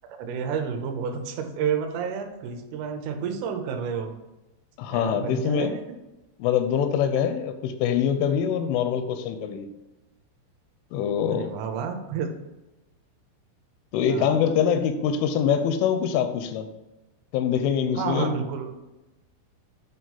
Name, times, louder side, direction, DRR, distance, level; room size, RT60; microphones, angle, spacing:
voice 1, 0.0-4.1 4.9-5.8 11.3-12.3 14.1-14.4 18.0-18.7, right 6 dB, 85° right, 5 dB, 3.3 m, -30 dB
voice 2, 4.8-5.7 6.4-9.7 10.9-11.5 13.9-16.7 17.3-18.3, left 8 dB, 85° left, 9 dB, 2.9 m, -24 dB
8.8 x 3.1 x 5.4 m, 1.0 s
omnidirectional pair, 5.6 m